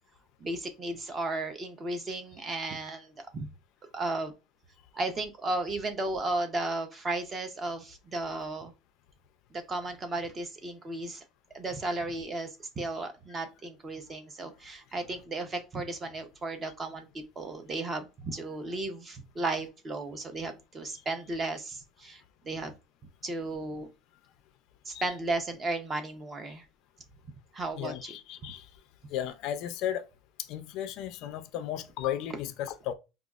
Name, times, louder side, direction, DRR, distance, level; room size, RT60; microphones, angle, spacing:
voice 1, 0.4-3.5 3.9-4.3 4.9-8.7 9.5-11.2 11.5-12.5 12.8-22.7 23.2-23.9 24.9-26.6 27.5-28.2, right 2 dB, 20° right, 0.5 m, -34 dB
voice 2, 27.7-28.7 29.1-30.0 30.4-32.9, left 11 dB, 50° left, 0.3 m, -35 dB
4.9 x 2.3 x 2.3 m
cardioid pair, 170°, 0 cm